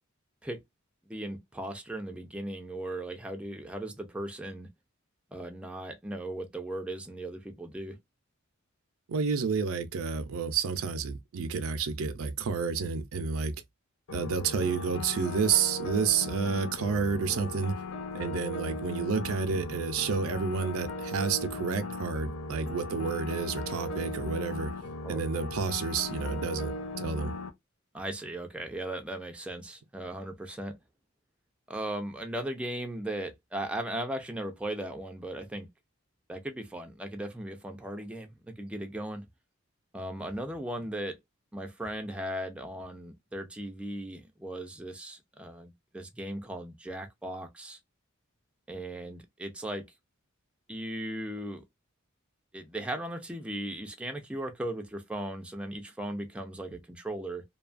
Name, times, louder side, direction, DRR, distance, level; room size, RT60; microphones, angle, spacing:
voice 1, 1.1-4.7 5.3-8.0 25.0-25.2 27.9-30.8 31.7-35.7 36.3-39.2 39.9-41.2 41.5-47.8 48.7-49.9 50.7-51.6 52.5-57.4, right 1 dB, 5° right, 0.4 m, -37 dB
voice 2, 9.1-13.5 14.1-17.7 18.1-24.7 25.1-27.3, right 5 dB, 85° right, 0.5 m, -30 dB
sound 1, 14.1-27.5, left 2 dB, 85° left, 0.5 m, -38 dB
2.7 x 2.2 x 2.4 m
head